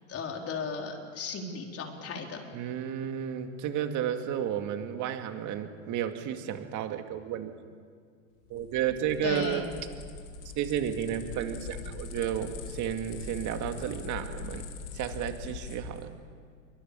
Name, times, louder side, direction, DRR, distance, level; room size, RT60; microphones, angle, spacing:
voice 1, 0.0-2.4 9.2-9.6, left 5 dB, 35° left, 2 dB, 4.4 m, -35 dB
voice 2, 2.5-7.5 8.5-9.6 10.6-14.7 14.9-16.2, right 10 dB, 45° right, 6 dB, 2.4 m, -32 dB
sound 1, 8.4-16.1, left 5 dB, 70° left, 3.9 m, -42 dB
27.5 x 24.0 x 7.2 m, 2.1 s
hypercardioid pair, 105°, 40 cm